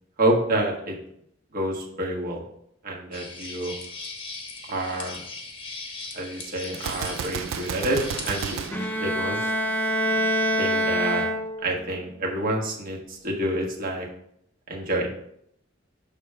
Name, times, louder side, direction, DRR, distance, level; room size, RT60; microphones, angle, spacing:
voice 1, 0.2-0.9 1.5-2.4 2.8-3.7 4.7-5.2 6.1-8.7 9.0-9.5 10.6-11.2 11.6-14.1 14.7-15.1, right 1 dB, 45° right, -1 dB, 1.4 m, -28 dB
sound 1, 3.1-8.7, left 3 dB, 25° left, 1.0 m, -38 dB
Gunshot gunfire, 6.7-9.8, right 8 dB, 75° right, 0.3 m, -33 dB
Bowed string instrument, 8.7-11.9, right 1 dB, 10° left, 0.5 m, -25 dB
6.5 x 3.5 x 5.6 m, 0.71 s
head